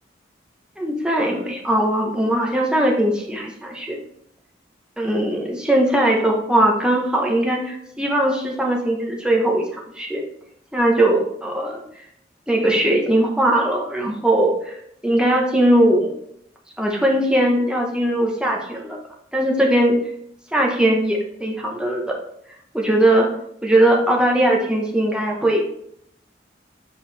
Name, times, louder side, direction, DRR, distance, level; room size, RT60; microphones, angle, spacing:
voice 1, 0.8-4.0 5.0-10.2 10.7-11.8 12.5-14.8 15.0-16.1 16.8-19.0 19.3-20.0 20.5-22.2 22.7-23.3 23.6-25.7, right 1 dB, 5° right, -1 dB, 0.9 m, -19 dB
7.5 x 4.6 x 3.3 m, 0.71 s
head